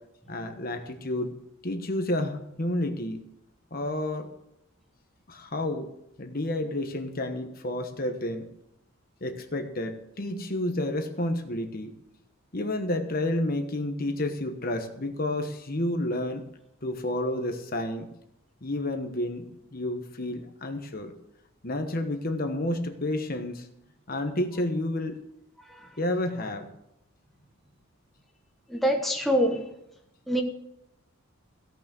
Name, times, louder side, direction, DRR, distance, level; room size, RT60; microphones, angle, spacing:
voice 1, 0.3-1.3 1.6-3.2 3.7-4.3 5.3-5.9 6.2-8.5 9.2-11.9 12.5-16.4 16.8-18.1 18.6-21.1 21.6-23.7 24.1-25.2 26.0-26.7, left 1 dB, 40° left, 6 dB, 1.2 m, -30 dB
voice 2, 28.7-29.6 30.3-30.4, equal, ahead, 1 dB, 1.1 m, -25 dB
16.5 x 6.1 x 6.9 m, 0.81 s
head